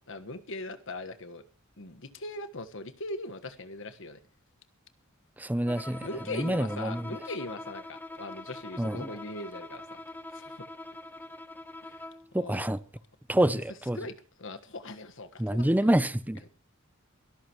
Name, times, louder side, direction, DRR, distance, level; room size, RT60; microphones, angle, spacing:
voice 1, 0.0-1.4 1.8-4.2 6.0-10.0 10.3-10.7 11.8-12.1 12.4-12.7 13.4-13.6 13.9-15.7 16.4-16.5, left 2 dB, 65° left, 1.5 m, -40 dB
voice 2, 5.4-6.1 6.3-7.0 8.8-9.1 12.3-12.8 13.3-14.0 15.4-16.4, right 1 dB, 10° right, 0.6 m, -27 dB
Bowed string instrument, 5.6-12.3, left 2 dB, 10° left, 1.1 m, -44 dB
23.5 x 13.5 x 3.1 m
head